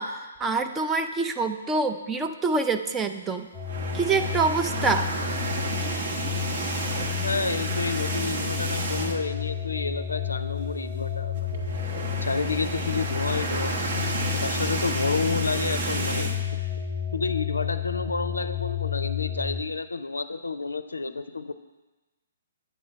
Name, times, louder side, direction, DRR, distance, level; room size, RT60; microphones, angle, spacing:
voice 1, 0.0-3.5 3.9-5.1, right 4 dB, 15° right, 7 dB, 0.4 m, -26 dB
sound 1, 3.5-19.6, left 9 dB, 10° left, 0.8 m, -31 dB
sound 2, 3.6-9.4 9.8-9.9 10.2-10.3 11.4-16.4, right 3 dB, 60° right, 1.1 m, -31 dB
voice 2, 7.2-11.6 12.1-14.0 14.4-16.6 17.1-21.5, left 4 dB, 85° left, 11 dB, 0.4 m, -30 dB
9.2 x 3.9 x 5.4 m, 1.1 s
figure-of-eight pair, 135°, 0 cm